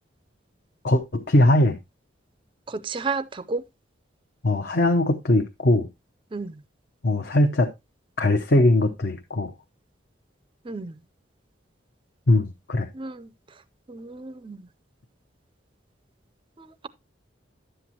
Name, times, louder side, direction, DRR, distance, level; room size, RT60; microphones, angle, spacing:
voice 1, 0.8-1.8 4.4-5.9 7.0-7.7 8.2-9.5 12.3-12.9, left 1 dB, 60° left, 0.8 m, -20 dB
voice 2, 2.7-3.6 6.3-6.5 10.6-10.9 12.9-13.3 13.9-14.7 16.6-16.9, right 4 dB, 25° right, 0.4 m, -32 dB
11.0 x 7.7 x 2.8 m
head